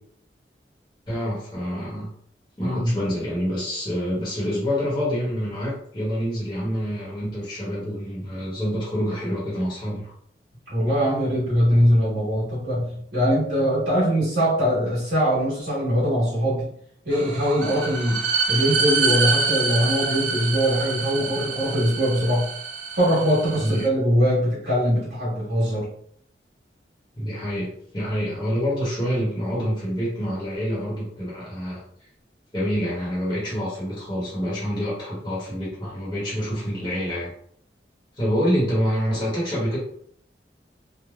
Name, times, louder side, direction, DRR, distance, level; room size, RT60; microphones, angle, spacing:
voice 1, 1.1-2.1 2.6-10.1 23.6-23.9 27.2-31.8 32.5-37.3 38.1-39.8, equal, 25° left, -7 dB, 1.0 m, -27 dB
voice 2, 2.6-2.9 10.7-16.7 17.0-18.2 18.5-22.5 22.9-25.9, equal, 70° right, -9 dB, 1.3 m, -22 dB
sound 1, 17.1-23.9, right 4 dB, 85° right, 0.5 m, -26 dB
3.1 x 2.2 x 2.4 m, 0.65 s
head